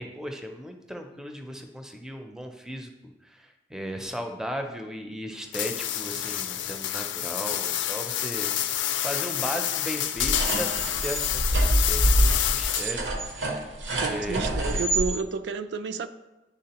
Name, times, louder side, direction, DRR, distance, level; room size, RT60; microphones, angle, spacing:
voice 1, 0.0-2.9 3.2-13.8 14.1-14.6, equal, 5° right, 0.4 m, -36 dB
sound 1, 5.5-13.1, left 11 dB, 85° left, 0.4 m, -28 dB
sound 2, 10.2-15.1, right 1 dB, 85° right, 0.8 m, -26 dB
voice 2, 14.0-16.1, right 5 dB, 70° right, 0.3 m, -30 dB
10.0 x 3.5 x 2.9 m
head